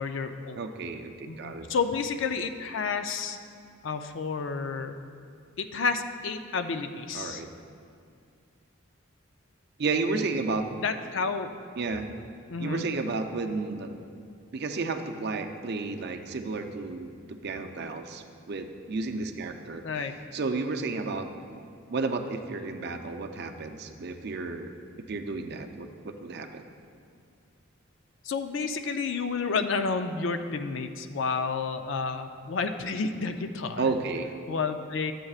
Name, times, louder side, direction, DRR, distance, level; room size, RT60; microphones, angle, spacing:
voice 1, 0.0-0.6 1.3-3.4 3.8-4.9 5.6-7.4 10.8-11.5 12.5-12.9 19.8-20.1 28.2-33.9 34.5-35.1, left 4 dB, 65° left, 7 dB, 0.4 m, -30 dB
voice 2, 0.6-1.7 7.1-7.5 9.8-10.6 11.8-12.1 12.6-13.9 14.5-19.8 20.3-21.6 21.9-24.7 25.1-26.6 33.8-34.3, right 3 dB, 55° right, 5 dB, 0.5 m, -32 dB
12.0 x 7.5 x 2.4 m, 2.3 s
head